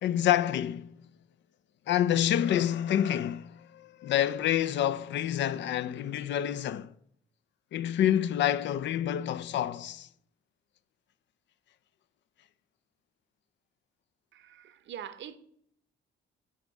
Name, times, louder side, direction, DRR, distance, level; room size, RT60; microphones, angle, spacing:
voice 1, 0.0-1.0 1.9-6.9 7.7-10.1, left 11 dB, 65° left, 0.4 m, -28 dB
voice 2, 14.3-15.4, right 9 dB, 70° right, 0.8 m, -43 dB
10.0 x 3.6 x 6.5 m
cardioid pair, 90°, 20 cm